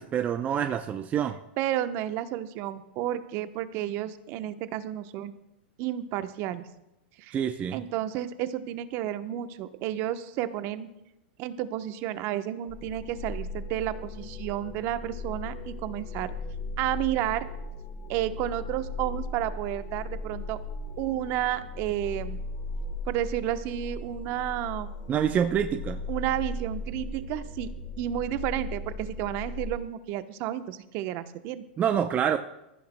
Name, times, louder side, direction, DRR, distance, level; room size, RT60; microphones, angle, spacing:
voice 1, 0.0-1.4 7.3-7.8 25.1-26.0 31.8-32.4, right 8 dB, 25° right, 7 dB, 0.6 m, -26 dB
voice 2, 1.6-5.4 5.8-6.6 7.2-7.4 7.7-10.9 11.4-16.3 16.8-17.5 18.1-20.6 21.0-22.4 23.1-24.9 26.1-27.7 28.0-31.6, right 12 dB, 45° right, 10 dB, 0.9 m, -31 dB
sound 1, 12.7-29.8, left 2 dB, 40° left, 1.3 m, -37 dB
22.0 x 14.5 x 2.2 m, 0.91 s
hypercardioid pair, 110°, 6 cm